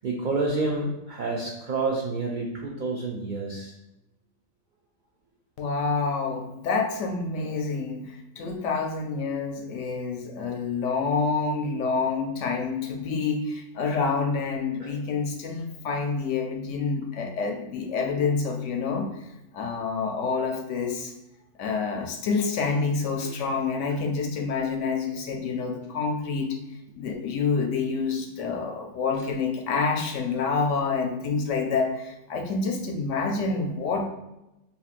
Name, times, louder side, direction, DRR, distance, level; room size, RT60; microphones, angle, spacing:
voice 1, 0.0-3.7 14.8-15.0 23.2-23.3, right 3 dB, 75° right, -1 dB, 0.4 m, -29 dB
voice 2, 5.6-19.1 19.5-21.1 21.6-26.6 27.0-34.1, left 4 dB, 70° left, 2 dB, 0.8 m, -27 dB
4.9 x 2.7 x 2.4 m, 0.92 s
omnidirectional pair, 1.4 m